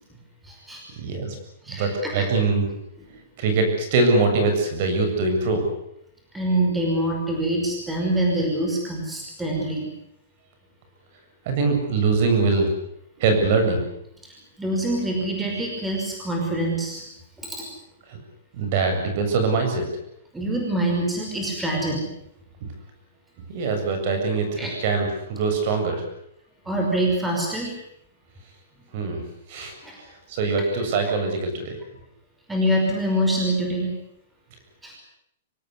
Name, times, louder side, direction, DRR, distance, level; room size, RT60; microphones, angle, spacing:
voice 1, 0.4-0.8 1.6-2.3 6.3-9.9 14.2-17.1 17.4-17.6 20.3-22.0 24.6-24.7 26.7-27.7 29.8-30.0 32.5-33.9 34.8-35.0, right 1 dB, 5° right, 0 dB, 5.5 m, -25 dB
voice 2, 1.0-1.4 1.7-2.7 3.4-5.6 11.5-12.7 13.2-13.8 18.1-18.2 18.5-19.8 23.5-26.0 28.9-29.2 29.5-29.7 30.3-31.8, right 3 dB, 45° right, 5 dB, 7.6 m, -22 dB
25.5 x 18.0 x 9.7 m, 0.76 s
hypercardioid pair, 165°, 0 cm